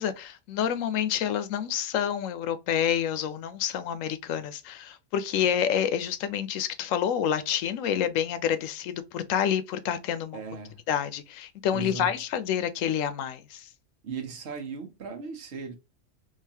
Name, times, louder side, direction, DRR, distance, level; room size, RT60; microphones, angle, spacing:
voice 1, 0.0-10.4 10.9-13.7, left 9 dB, 90° left, 1.0 m, -28 dB
voice 2, 10.3-10.8 11.7-12.1 14.0-15.8, right 5 dB, 60° right, 1.1 m, -37 dB
3.8 x 2.8 x 2.7 m
omnidirectional pair, 1.3 m